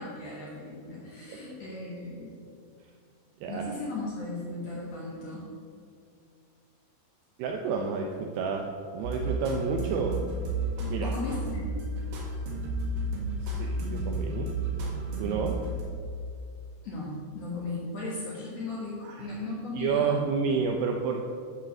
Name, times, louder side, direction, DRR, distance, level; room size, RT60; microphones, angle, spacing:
voice 1, 0.0-2.3 3.5-5.5 11.0-11.7 16.8-20.2, left 2 dB, 75° left, -6 dB, 1.4 m, -36 dB
voice 2, 3.4-3.8 7.4-8.7 8.9-10.2 10.9-11.1 13.4-14.5 15.2-15.6 19.0-19.3 19.8-21.2, right 5 dB, 85° right, 2 dB, 2.3 m, -30 dB
sound 1, 9.0-15.8, right 2 dB, 60° right, 3.1 m, -32 dB
12.5 x 4.9 x 6.0 m, 2.3 s
omnidirectional pair, 5.5 m